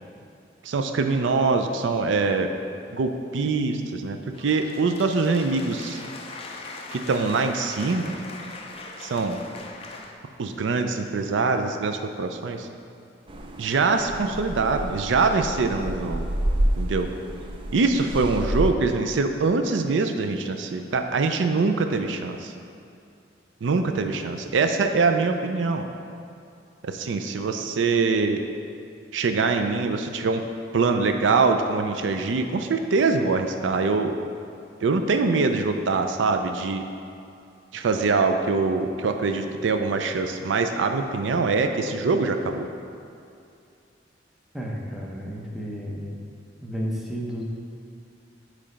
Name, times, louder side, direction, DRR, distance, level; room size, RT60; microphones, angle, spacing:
voice 1, 0.6-2.5 2.9-6.0 6.9-8.2 9.0-9.4 10.4-12.7 13.6-16.3 16.8-17.1 17.7-22.5 23.6-25.9 26.8-28.4 29.1-30.4 30.7-34.2 34.8-36.8 37.7-42.7, right 4 dB, 85° right, 6 dB, 0.4 m, -24 dB
sound 1, 4.3-10.1, left 3 dB, 30° left, 0.5 m, -40 dB
sound 2, 13.3-18.7, right 1 dB, 30° right, 0.4 m, -29 dB
voice 2, 44.5-46.1 46.6-47.4, equal, ahead, -3 dB, 0.8 m, -32 dB
8.5 x 3.2 x 5.1 m, 2.5 s
head